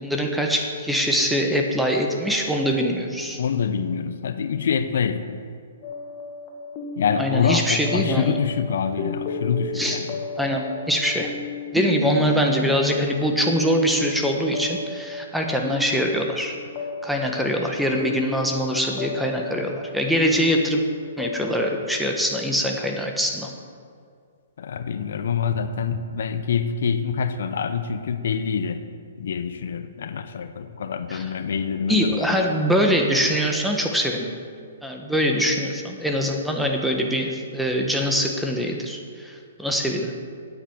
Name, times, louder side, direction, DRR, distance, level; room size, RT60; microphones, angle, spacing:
voice 1, 0.0-3.4 7.2-8.3 9.7-10.0 10.4-11.3 11.7-16.6 17.0-20.8 21.2-23.5 31.1-31.2 31.9-34.3 34.8-40.1, equal, ahead, 2 dB, 1.3 m, -23 dB
voice 2, 3.4-5.4 7.0-10.2 24.6-28.8 29.2-32.3, left 6 dB, 70° left, 10 dB, 0.7 m, -26 dB
sound 1, 5.8-21.6, left 4 dB, 35° left, 2.0 m, -33 dB
9.5 x 8.2 x 7.2 m, 2.2 s
hypercardioid pair, 135°, 0 cm